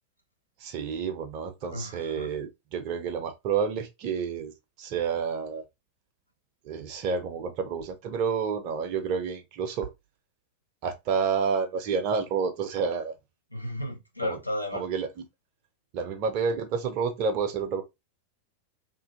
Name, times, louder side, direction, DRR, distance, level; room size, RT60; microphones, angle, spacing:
voice 1, 0.6-4.5 4.8-5.6 6.6-9.9 10.8-13.1 14.2-14.4 14.7-15.1 15.9-17.8, right 6 dB, 40° right, 0.5 m, -29 dB
voice 2, 1.7-2.3 13.5-14.8, left 1 dB, 85° left, 0.5 m, -33 dB
2.5 x 2.4 x 2.4 m
figure-of-eight pair, 90°, 0 cm